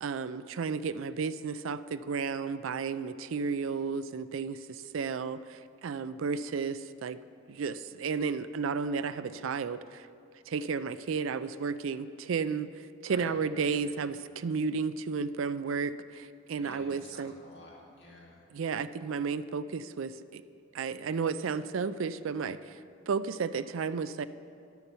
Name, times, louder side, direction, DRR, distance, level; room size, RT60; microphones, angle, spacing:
voice 1, 0.0-7.2 7.5-10.1 10.5-17.3 18.5-20.4 20.7-22.8 23.1-24.2, right 5 dB, 80° right, 13 dB, 0.4 m, -33 dB
voice 2, 13.0-13.4 13.7-13.9 16.5-18.4, left 1 dB, 55° left, -4 dB, 2.3 m, -51 dB
11.5 x 7.0 x 6.8 m, 2.4 s
head